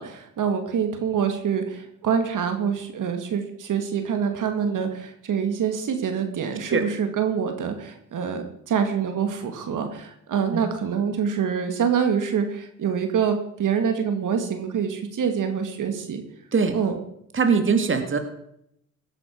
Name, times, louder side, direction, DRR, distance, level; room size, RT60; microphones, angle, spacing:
voice 1, 0.0-16.2 16.7-17.0, right 7 dB, 60° right, 6 dB, 2.1 m, -26 dB
voice 2, 17.3-18.2, right 5 dB, 35° right, 7 dB, 2.0 m, -21 dB
17.5 x 9.9 x 4.7 m, 0.74 s
supercardioid pair, 60°, 35 cm